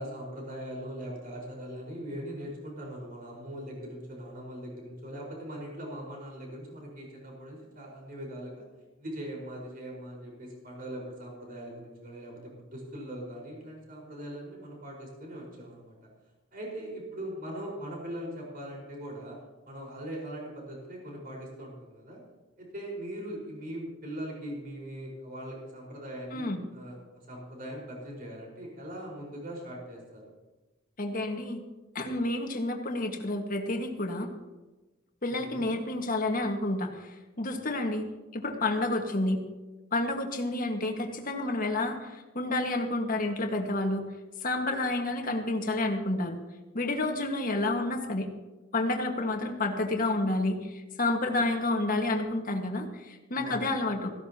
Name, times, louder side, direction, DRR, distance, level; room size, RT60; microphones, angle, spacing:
voice 1, 0.0-8.7 9.0-16.1 16.5-19.4 19.7-22.2 22.6-27.0 27.3-30.3 35.4-35.7 53.3-53.8, right 1 dB, 45° right, -2 dB, 4.8 m, -41 dB
voice 2, 26.3-26.6 31.0-31.6 31.9-34.3 35.2-38.1 38.3-39.4 39.9-44.1 44.4-46.4 46.7-48.3 48.7-54.1, left 2 dB, 45° left, 3 dB, 1.7 m, -30 dB
17.0 x 15.5 x 2.9 m, 1.2 s
head